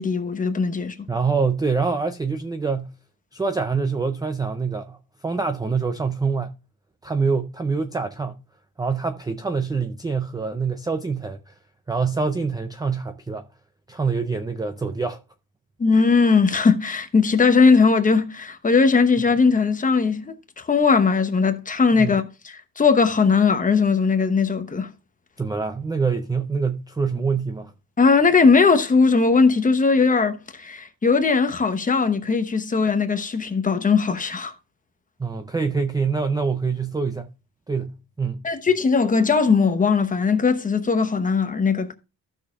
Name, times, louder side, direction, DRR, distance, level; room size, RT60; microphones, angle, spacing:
voice 1, 0.0-0.9 15.8-24.9 28.0-34.5 38.4-42.0, left 4 dB, 20° left, 0.9 m, -19 dB
voice 2, 1.1-2.9 3.3-5.0 5.2-6.5 7.0-8.3 8.8-11.5 11.9-13.5 13.9-15.2 22.0-22.2 25.4-27.7 35.2-37.3 37.7-38.4, right 4 dB, 10° right, 0.4 m, -25 dB
15.0 x 6.3 x 2.3 m
cardioid pair, 150°, 37 cm